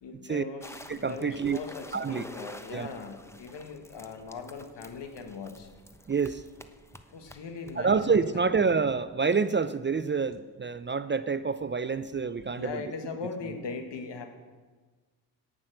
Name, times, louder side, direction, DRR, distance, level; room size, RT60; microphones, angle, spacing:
voice 1, 0.0-5.7 7.1-8.7 12.6-14.3, left 4 dB, 65° left, 5 dB, 1.9 m, -40 dB
sound 1, 0.6-8.3, left 1 dB, 5° left, 1.0 m, -49 dB
voice 2, 0.9-1.6 1.9-2.2 2.7-2.9 6.1-6.4 7.8-12.8, right 5 dB, 25° right, 14 dB, 0.5 m, -27 dB
17.0 x 6.1 x 6.4 m, 1.4 s
hypercardioid pair, 45°, 46 cm